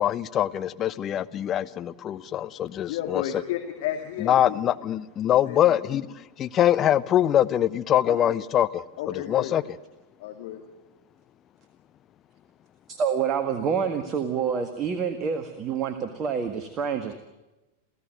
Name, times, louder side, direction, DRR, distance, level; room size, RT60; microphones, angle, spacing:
voice 1, 0.0-3.2 4.2-6.1 6.4-9.6, left 11 dB, 30° left, 0.8 m, -23 dB
voice 2, 2.9-4.6 5.5-6.0 8.0-8.3 9.0-9.6 10.2-10.6, left 11 dB, 50° left, 2.4 m, -33 dB
voice 3, 12.9-17.1, right 7 dB, 30° right, 1.7 m, -27 dB
28.5 x 15.5 x 9.3 m
figure-of-eight pair, 90°, 0 cm